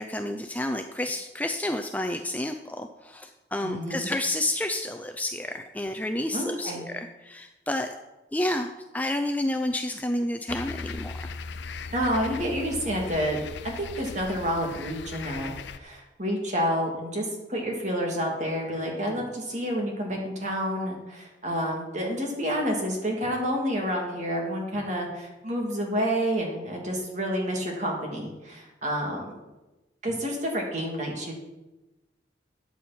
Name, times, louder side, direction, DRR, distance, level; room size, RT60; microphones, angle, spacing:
voice 1, 0.0-7.9 8.3-11.3, left 1 dB, 10° left, 6 dB, 0.5 m, -30 dB
voice 2, 3.6-4.1 6.3-6.8 11.9-13.4 13.6-29.4 30.0-31.4, equal, 40° right, 0 dB, 2.8 m, -29 dB
sound 1, 10.5-15.8, left 4 dB, 70° left, 0.5 m, -38 dB
14.0 x 9.3 x 4.4 m, 1.0 s
head